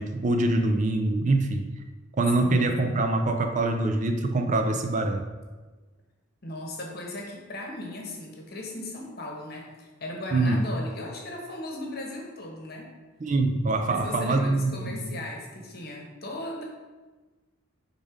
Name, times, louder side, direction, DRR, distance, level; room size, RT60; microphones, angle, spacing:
voice 1, 0.0-1.7 2.2-5.2 10.3-10.6 13.2-15.2, right 2 dB, 35° right, 6 dB, 0.4 m, -24 dB
voice 2, 2.4-3.0 6.4-12.9 13.9-16.6, left 1 dB, 50° left, 0 dB, 1.1 m, -37 dB
5.3 x 3.7 x 5.0 m, 1.3 s
head